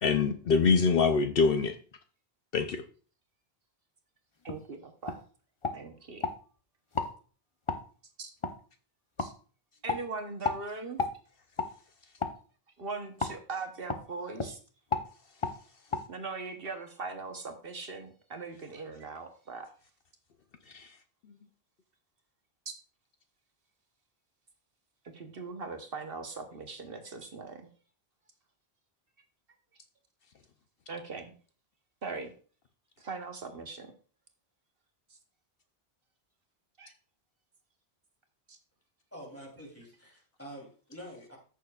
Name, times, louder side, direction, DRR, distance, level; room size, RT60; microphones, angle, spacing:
voice 1, 0.0-1.8 2.5-2.8 20.7-20.9, left 5 dB, 65° left, 8 dB, 0.8 m, -24 dB
voice 2, 4.4-5.2 5.7-6.3 8.2-8.3 9.2-9.3 9.8-11.0 12.8-14.6 16.1-19.7 22.7-22.8 25.1-27.7 30.9-31.3 32.0-32.3 33.0-33.9 36.8-36.9 38.5-38.6, right 4 dB, 60° right, 5 dB, 1.2 m, -40 dB
sound 1, 4.5-4.6 5.1-5.2 5.6-6.4 6.9-7.1 7.7-7.8 8.4-8.5 9.2-9.3 9.9-10.0 10.4-10.6 11.0-11.1 11.6-11.7 12.2-12.4 13.2-13.4 13.9-14.0 14.3-14.5 14.9-15.1 15.4-15.6 15.9-16.0, left 4 dB, 30° left, 0.7 m, -32 dB
voice 3, 39.1-41.4, equal, 15° left, -2 dB, 3.1 m, -47 dB
14.0 x 6.5 x 2.4 m, 0.40 s
omnidirectional pair, 1.1 m